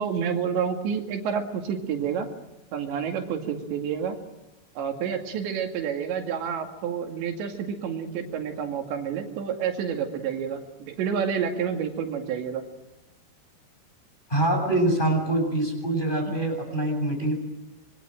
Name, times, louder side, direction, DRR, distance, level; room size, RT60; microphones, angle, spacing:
voice 1, 0.0-2.3 2.7-4.2 4.8-12.6 16.3-16.4, right 7 dB, 80° right, 4 dB, 4.5 m, -29 dB
voice 2, 14.3-17.3, right 1 dB, 10° left, 2 dB, 7.7 m, -24 dB
26.0 x 23.0 x 9.1 m, 0.98 s
omnidirectional pair, 5.1 m